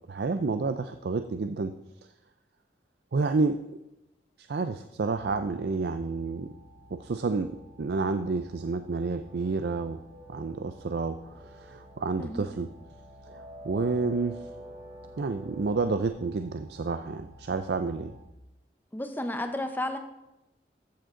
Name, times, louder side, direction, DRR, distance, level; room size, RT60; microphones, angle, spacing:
voice 1, 0.1-1.7 3.1-3.6 4.4-6.5 6.9-7.5 7.8-10.0 10.3-12.7 13.6-14.5 15.2-18.1, right 4 dB, 65° right, 9 dB, 0.4 m, -29 dB
sound 1, 5.1-18.2, equal, 80° left, 2.2 m, -53 dB
sound 2, 9.2-16.1, right 1 dB, 80° right, 4.1 m, -48 dB
voice 2, 12.2-12.5 18.9-20.0, left 1 dB, 10° left, 7 dB, 0.8 m, -32 dB
14.0 x 7.7 x 3.8 m, 0.93 s
head